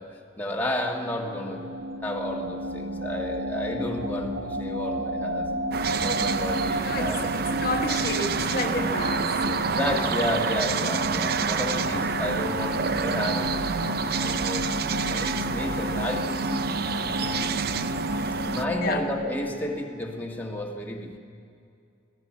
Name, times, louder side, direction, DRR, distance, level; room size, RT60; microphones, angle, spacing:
voice 1, 0.0-5.6 6.0-7.3 9.7-13.7 14.2-14.7 15.1-16.6 17.2-17.8 18.5-21.2, left 1 dB, 10° left, -1 dB, 1.7 m, -32 dB
sound 1, 0.9-19.9, equal, 85° right, 1.7 m, -32 dB
sound 2, 5.7-18.6, right 5 dB, 50° right, 0.6 m, -28 dB
voice 2, 6.8-10.0 18.8-19.0, left 2 dB, 50° left, 3 dB, 1.6 m, -31 dB
25.5 x 17.5 x 7.4 m, 2.5 s
head